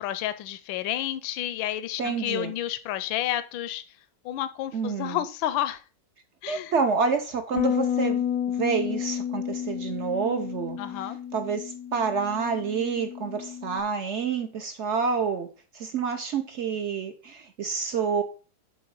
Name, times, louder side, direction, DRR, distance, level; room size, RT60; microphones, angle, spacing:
voice 1, 0.0-3.8 4.2-5.8 6.4-6.7 10.8-11.2, left 12 dB, 90° left, 1.3 m, -30 dB
voice 2, 2.0-2.5 4.7-5.2 6.5-8.2 8.6-10.8 11.3-15.5 15.7-18.2, right 5 dB, 70° right, 0.6 m, -28 dB
Bass guitar, 7.6-13.8, left 9 dB, 75° left, 0.9 m, -31 dB
7.8 x 4.0 x 5.3 m
omnidirectional pair, 2.0 m